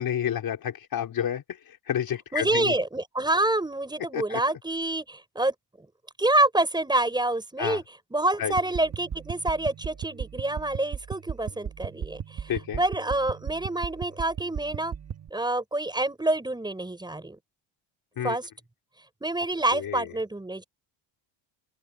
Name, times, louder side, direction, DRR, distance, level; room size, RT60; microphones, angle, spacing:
voice 1, 0.0-2.7 4.1-4.4 7.6-7.8 8.4-8.5 12.5-12.8 18.2-18.4 19.7-20.1, left 9 dB, 45° left, 4.8 m, -30 dB
voice 2, 2.3-5.5 6.2-7.8 8.1-12.5 12.8-15.0 15.3-17.4 18.2-18.5 19.2-20.6, right 2 dB, 10° right, 6.0 m, -27 dB
sound 1, 8.5-15.3, right 7 dB, 30° right, 1.6 m, -37 dB
open air
cardioid pair, 140°, 49 cm